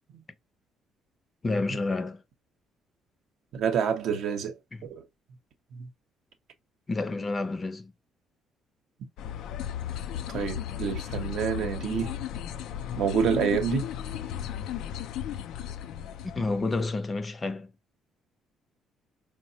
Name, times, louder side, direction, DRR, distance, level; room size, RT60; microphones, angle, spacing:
voice 1, 1.4-2.2 4.7-4.9 6.9-7.9 16.3-17.7, left 3 dB, 25° left, 0.5 m, -29 dB
voice 2, 3.5-4.6 4.8-5.0 5.7-5.9 10.3-12.1 13.0-13.9, right 7 dB, 70° right, 0.7 m, -28 dB
sound 1, 9.2-16.9, left 10 dB, 80° left, 0.3 m, -35 dB
4.0 x 2.0 x 2.7 m
cardioid pair, 115°, 0 cm